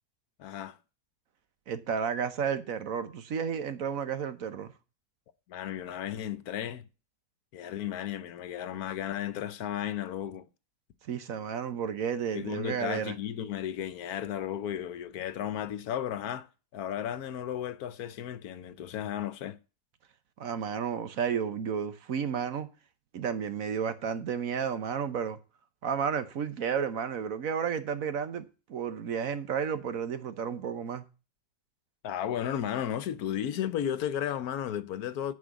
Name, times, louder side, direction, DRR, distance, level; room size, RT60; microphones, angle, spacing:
voice 1, 0.4-0.8 5.5-6.9 7.5-10.5 12.3-16.5 16.7-19.6 32.0-35.3, left 10 dB, 75° left, 1.2 m, -34 dB
voice 2, 1.7-4.7 11.0-13.2 20.4-22.7 23.1-25.4 25.8-31.0, right 7 dB, 65° right, 1.3 m, -32 dB
10.0 x 5.0 x 8.1 m
omnidirectional pair, 1.6 m